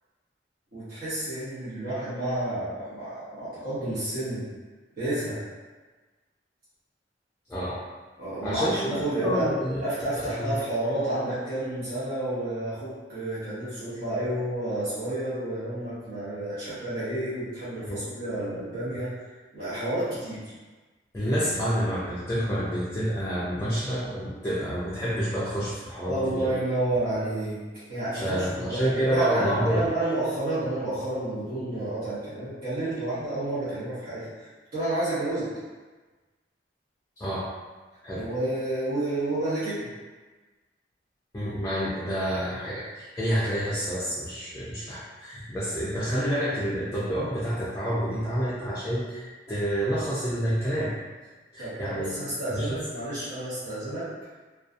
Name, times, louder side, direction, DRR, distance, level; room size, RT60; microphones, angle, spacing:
voice 1, 0.7-4.5 5.0-5.4 8.2-9.5 9.8-20.5 26.0-28.8 29.1-35.5 38.1-39.9 51.6-54.1, right 1 dB, 55° right, -13 dB, 0.9 m, -30 dB
voice 2, 7.5-7.8 8.4-9.8 10.2-10.6 17.9-18.0 21.1-26.5 28.1-29.9 37.2-37.5 38.0-38.3 41.3-50.9 51.5-52.8, equal, 15° left, -8 dB, 0.4 m, -28 dB
2.6 x 2.3 x 2.4 m, 1.3 s
head